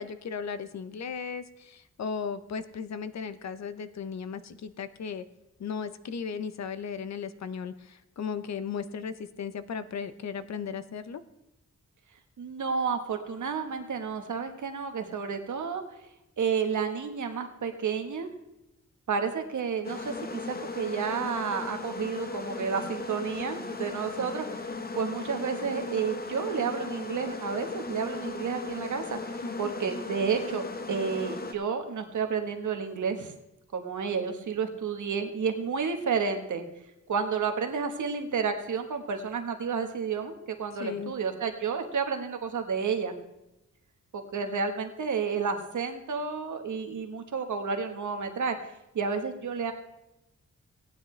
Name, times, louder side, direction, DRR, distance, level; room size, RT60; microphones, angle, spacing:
voice 1, 0.0-5.2 5.6-11.2 29.4-29.7 40.8-41.1, left 6 dB, 65° left, 13 dB, 0.7 m, -36 dB
voice 2, 12.4-15.8 16.4-18.3 19.1-24.6 24.9-33.3 33.7-36.6 37.1-40.3 40.6-43.1 44.1-48.6 48.9-49.7, right 6 dB, 80° right, 6 dB, 1.2 m, -31 dB
sound 1, 19.8-31.5, left 3 dB, 30° left, 0.7 m, -37 dB
16.5 x 9.6 x 3.2 m, 0.91 s
wide cardioid pair, 160°, 29 cm